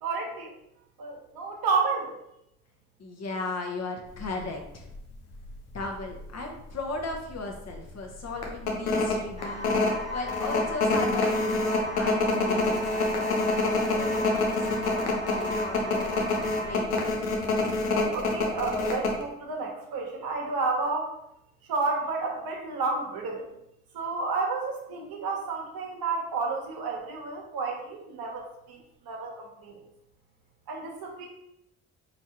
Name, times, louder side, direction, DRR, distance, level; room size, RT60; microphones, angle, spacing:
voice 1, 0.0-0.5 1.0-2.1 18.1-21.1 21.6-23.4 23.9-28.8 29.0-29.8 30.7-31.3, right 4 dB, 55° right, 0 dB, 1.1 m, -31 dB
voice 2, 3.0-4.9 5.7-9.7 10.1-13.6 13.9-17.0, left 3 dB, 35° left, 2 dB, 1.0 m, -37 dB
sound 1, 4.2-4.4 4.9-5.0 5.3-6.2 6.6-6.7 7.1-7.4 7.7-7.8 8.4-19.2, left 3 dB, 90° left, 0.6 m, -26 dB
sound 2, 9.4-16.8, equal, 15° left, 1.3 m, -37 dB
4.5 x 3.0 x 2.9 m, 0.83 s
hypercardioid pair, 45°, 43 cm